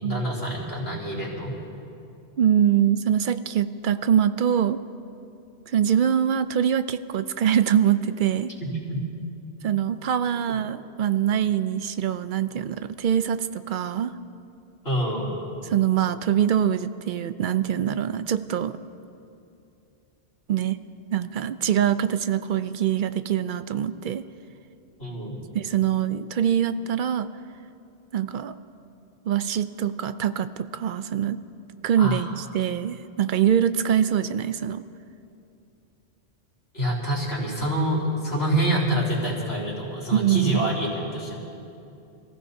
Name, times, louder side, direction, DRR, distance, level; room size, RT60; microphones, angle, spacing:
voice 1, 0.0-1.5 8.6-9.0 14.8-15.4 25.0-25.4 32.0-32.2 36.7-41.3, right 1 dB, 65° left, -4 dB, 4.0 m, -26 dB
voice 2, 2.4-4.8 5.7-8.5 9.6-14.1 15.7-18.8 20.5-20.8 21.1-24.2 25.5-27.3 28.1-28.5 29.3-31.4 31.8-34.8 40.1-40.7, right 9 dB, 60° right, 12 dB, 0.6 m, -24 dB
27.0 x 15.5 x 2.7 m, 2.7 s
omnidirectional pair, 1.2 m